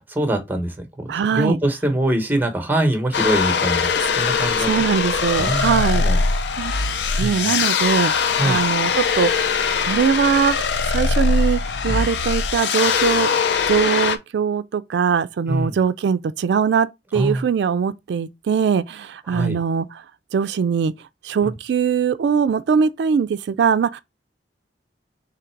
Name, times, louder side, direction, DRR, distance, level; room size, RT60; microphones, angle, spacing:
voice 1, 0.0-4.8 5.4-6.2 6.8-7.6 8.4-8.6 11.9-12.0 15.5-15.8 17.1-17.4 19.3-19.6 21.4-21.6, right 1 dB, 10° right, 1.0 m, -24 dB
voice 2, 1.1-1.6 4.6-6.7 7.2-13.3 13.7-20.0 20.3-20.9 21.2-24.0, right 6 dB, 75° right, 0.3 m, -21 dB
sound 1, 3.1-14.2, left 5 dB, 75° left, 0.5 m, -21 dB
3.8 x 3.1 x 4.4 m
head